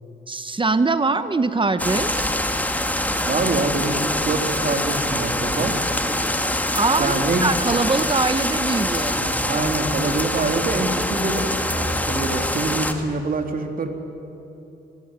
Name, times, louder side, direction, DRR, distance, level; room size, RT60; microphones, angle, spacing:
voice 1, 0.3-2.3 6.8-9.2, right 3 dB, 25° right, 11 dB, 1.2 m, -22 dB
sound 1, 1.8-12.9, left 1 dB, 10° left, 2.3 m, -24 dB
voice 2, 3.2-5.7 7.0-7.5 9.2-13.9, right 3 dB, 50° right, 4 dB, 3.2 m, -25 dB
23.0 x 22.0 x 9.2 m, 2.9 s
cardioid pair, 75°, 18 cm